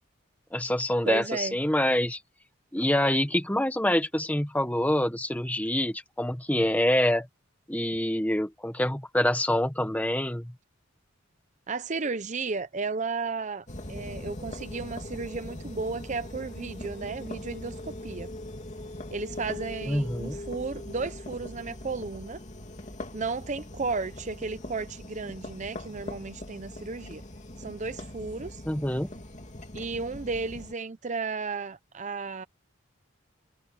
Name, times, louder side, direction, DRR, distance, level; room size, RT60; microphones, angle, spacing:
voice 1, 0.5-2.2 2.7-7.3 7.7-10.5 19.9-20.4 28.7-29.1, left 1 dB, 10° left, 1.4 m, -26 dB
voice 2, 1.1-1.6 11.7-18.3 19.1-22.4 23.1-27.2 27.6-28.6 29.7-32.5, right 4 dB, 35° right, 0.6 m, -34 dB
sound 1, 13.7-30.7, left 1 dB, 35° left, 2.9 m, -41 dB
head